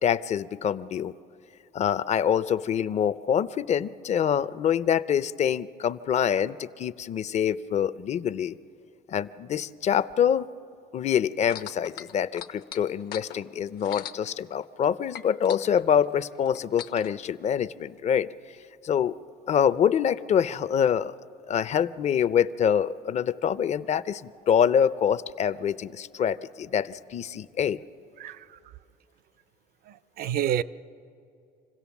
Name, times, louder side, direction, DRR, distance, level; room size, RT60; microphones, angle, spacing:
voice 1, 0.0-1.1 1.7-8.5 9.1-10.5 10.9-18.3 18.8-19.1 19.5-21.1 21.5-27.8, left 8 dB, 40° left, 0.5 m, -25 dB
sound 1, 11.4-14.9 15.1-17.1 17.9-18.0, left 10 dB, 75° left, 0.8 m, -41 dB
voice 2, 28.2-28.6 29.8-30.6, right 10 dB, 60° right, 0.5 m, -29 dB
27.0 x 16.5 x 7.2 m
cardioid pair, 110°, 17 cm